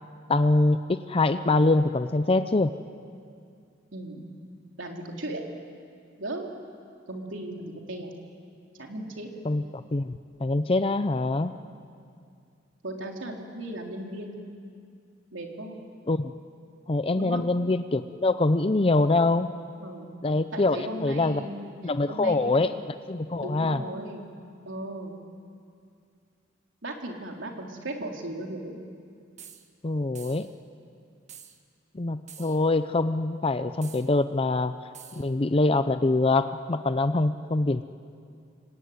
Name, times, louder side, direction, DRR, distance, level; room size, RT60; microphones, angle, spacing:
voice 1, 0.3-2.7 9.4-10.1 10.4-11.6 16.1-16.3 16.9-19.5 20.2-21.4 21.8-23.8 29.8-30.5 31.9-34.7 35.2-37.8, left 2 dB, 30° left, 11 dB, 0.6 m, -24 dB
voice 2, 3.9-4.2 4.8-5.4 6.2-6.5 7.1-8.1 8.8-9.3 11.7-11.9 12.8-14.3 15.3-15.8 17.2-17.4 19.8-20.1 20.5-21.7 22.1-22.8 23.4-24.3 24.6-25.2 26.8-28.8, right 1 dB, 75° right, 1 dB, 3.7 m, -36 dB
sound 1, 29.4-29.7 30.2-30.5 31.3-31.6 32.3-32.7 33.8-34.1 34.9-35.3, right 8 dB, 40° right, 1.6 m, -47 dB
27.0 x 23.5 x 9.5 m, 2.4 s
head